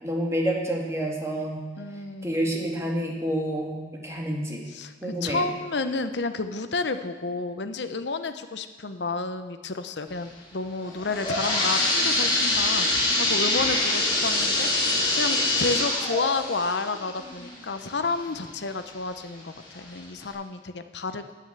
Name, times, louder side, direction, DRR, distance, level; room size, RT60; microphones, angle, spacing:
voice 1, 0.0-1.6 2.2-4.7 5.0-5.5, right 1 dB, 15° right, -1 dB, 2.1 m, -28 dB
voice 2, 1.8-2.4 4.7-21.3, left 3 dB, 70° left, 9 dB, 0.9 m, -31 dB
sound 1, 10.8-18.4 18.9-19.0 19.8-19.9 20.3-20.4, left 2 dB, 30° left, 4.4 m, -25 dB
10.0 x 9.7 x 8.0 m, 1.3 s
head